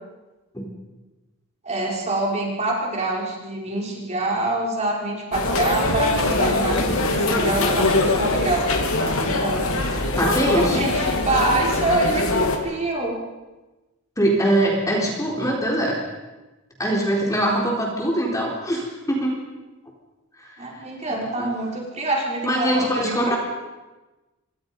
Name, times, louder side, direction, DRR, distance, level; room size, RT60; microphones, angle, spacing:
voice 1, 1.6-8.6 9.0-9.7 10.5-13.2 20.6-23.4, right 2 dB, 30° right, -2 dB, 5.5 m, -26 dB
sound 1, 5.3-12.6, left 2 dB, 75° left, 3.2 m, -22 dB
voice 2, 10.2-10.8 14.2-16.0 16.8-19.4 20.4-20.6 21.4-21.5 22.4-23.4, right 1 dB, 15° left, -1 dB, 3.9 m, -22 dB
26.5 x 24.5 x 5.4 m, 1.1 s
head